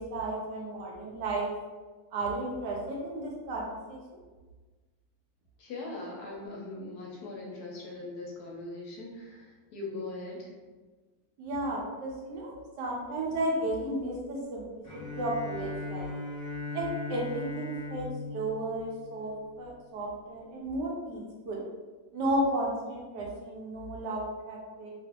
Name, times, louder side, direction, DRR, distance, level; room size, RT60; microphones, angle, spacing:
voice 1, 0.0-1.5 2.1-4.0 11.4-14.6 14.9-16.1 16.7-21.6 22.1-24.9, right 1 dB, 75° right, -2 dB, 1.2 m, -33 dB
voice 2, 5.6-10.5, left 2 dB, 70° left, -2 dB, 1.0 m, -40 dB
Bowed string instrument, 14.8-19.8, left 2 dB, 25° left, 1.1 m, -39 dB
3.0 x 2.3 x 2.8 m, 1.3 s
omnidirectional pair, 1.9 m